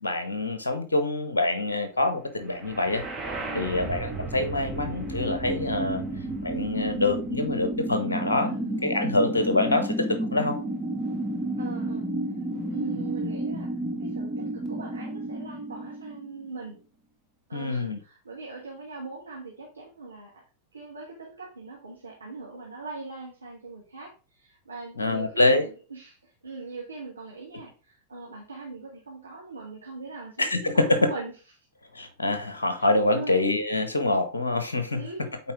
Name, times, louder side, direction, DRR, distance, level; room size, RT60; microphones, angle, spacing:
voice 1, 0.0-3.0 3.5-6.0 6.4-8.5 8.8-10.6 17.5-18.0 25.0-25.7 30.4-31.1 31.9-35.0, left 2 dB, 75° left, 9 dB, 1.0 m, -25 dB
sound 1, 2.6-16.5, right 1 dB, 10° right, 2.0 m, -32 dB
voice 2, 3.5-4.0 8.5-8.8 11.6-12.1 12.7-13.7 14.0-16.8 17.5-20.4 20.7-31.3 33.1-33.4 34.9-35.4, right 3 dB, 80° right, -3 dB, 1.5 m, -41 dB
8.7 x 4.1 x 3.6 m, 0.34 s
figure-of-eight pair, 90°, 0 cm